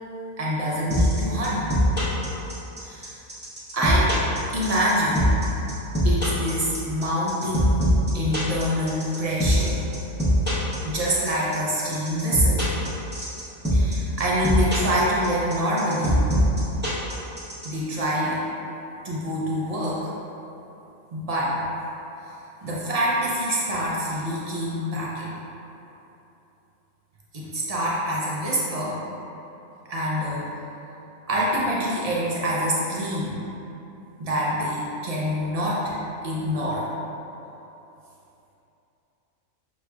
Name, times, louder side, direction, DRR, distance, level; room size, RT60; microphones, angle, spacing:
voice 1, 0.4-1.8 2.8-3.1 3.7-4.1 4.5-5.3 6.0-9.8 10.8-12.6 13.7-16.2 17.6-18.4 19.0-20.1 21.1-21.6 22.6-25.4 27.3-29.0 29.9-30.5 31.3-33.4 34.2-36.0 36.2-36.9, equal, 60° right, -6 dB, 0.4 m, -26 dB
sound 1, 0.9-17.7, equal, 10° right, 0.5 m, -22 dB
6.0 x 3.0 x 2.3 m, 3.0 s
omnidirectional pair, 1.4 m